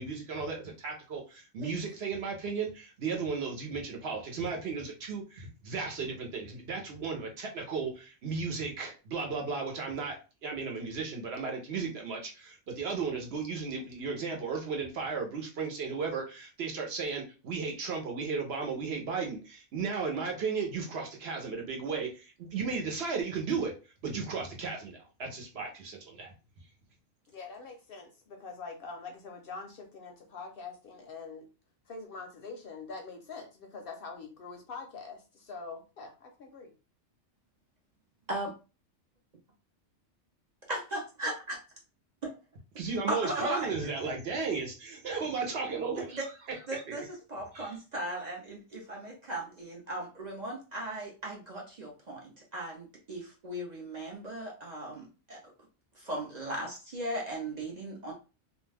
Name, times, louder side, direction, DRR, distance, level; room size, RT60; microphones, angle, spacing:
voice 1, 0.0-10.2 10.4-23.7 24.0-26.3 42.8-46.2 46.7-47.0 47.5-47.7, right 5 dB, 60° right, 1 dB, 0.9 m, -35 dB
voice 2, 27.3-31.5 31.9-36.7, left 4 dB, 60° left, 3 dB, 0.7 m, -44 dB
voice 3, 40.7-41.6 42.2-42.4 43.1-43.7 46.1-55.5 55.9-58.1, right 1 dB, 45° right, -2 dB, 0.6 m, -37 dB
2.4 x 2.2 x 3.3 m, 0.32 s
omnidirectional pair, 1.2 m